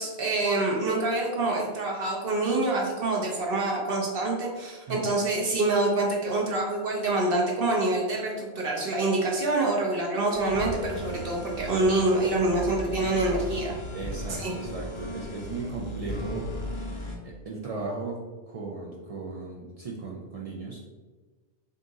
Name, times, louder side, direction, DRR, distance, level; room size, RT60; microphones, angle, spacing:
voice 1, 0.0-13.7 14.3-14.5, right 2 dB, 55° right, -1 dB, 0.8 m, -26 dB
sound 1, 10.3-17.2, left 1 dB, 40° left, 0.4 m, -36 dB
voice 2, 13.9-16.5 17.2-20.8, right 3 dB, 75° right, -3 dB, 0.3 m, -36 dB
3.5 x 2.8 x 3.9 m, 1.3 s
omnidirectional pair, 1.3 m